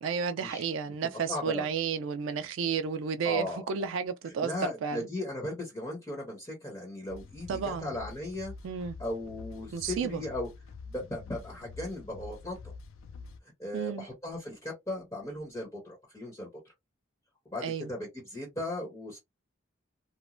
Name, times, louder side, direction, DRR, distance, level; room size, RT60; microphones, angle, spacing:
voice 1, 0.0-5.0 7.5-8.0 8.6-8.9 9.7-10.2 13.7-14.1 17.6-17.9, right 6 dB, 80° right, 0.4 m, -32 dB
voice 2, 1.1-1.7 3.2-3.9 4.2-8.5 9.0-10.5 10.9-12.6 13.6-16.5 17.5-19.2, left 1 dB, 15° left, 1.1 m, -37 dB
sound 1, 7.1-13.4, left 4 dB, 85° left, 0.4 m, -46 dB
3.0 x 2.1 x 2.4 m
head